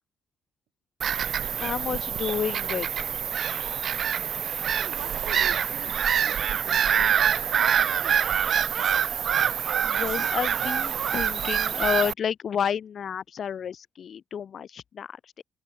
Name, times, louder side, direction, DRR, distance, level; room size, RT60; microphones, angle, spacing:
Bird vocalization bird call bird song / Gull seagull, 1.0-12.1, right 8 dB, 60° right, 0.5 m, -25 dB
voice 1, 1.6-2.9 9.8-15.4, left 8 dB, 55° left, 0.6 m, -30 dB
voice 2, 4.7-8.2, right 15 dB, 90° right, 2.3 m, -46 dB
open air
cardioid pair, 90°, 0 cm